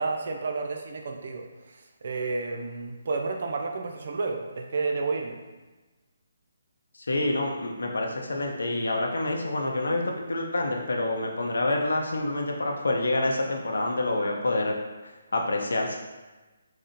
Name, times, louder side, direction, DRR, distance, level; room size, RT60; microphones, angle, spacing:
voice 1, 0.0-1.5 2.0-5.4, right 3 dB, 50° right, 3 dB, 0.4 m, -30 dB
voice 2, 7.1-14.7 15.0-16.0, left 2 dB, 65° left, 0 dB, 0.6 m, -27 dB
4.2 x 2.1 x 3.0 m, 1.2 s
figure-of-eight pair, 140°, 0 cm